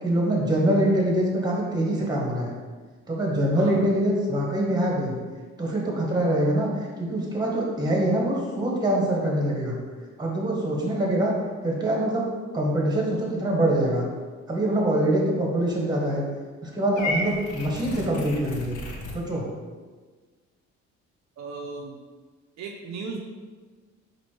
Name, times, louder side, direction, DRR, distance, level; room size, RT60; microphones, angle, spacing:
voice 1, 0.0-2.5 3.1-5.2 5.6-9.8 10.2-11.3 11.6-12.3 12.5-14.1 14.5-16.2 16.6-18.8 19.1-19.5, right 1 dB, 15° right, -2 dB, 1.3 m, -24 dB
voice 2, 3.6-3.9 21.4-22.0 22.6-23.2, right 4 dB, 65° right, 1 dB, 0.5 m, -36 dB
Purr / Meow, 17.0-19.2, left 1 dB, 80° left, 0.8 m, -33 dB
4.2 x 2.6 x 4.4 m, 1.4 s
cardioid pair, 90°, 30 cm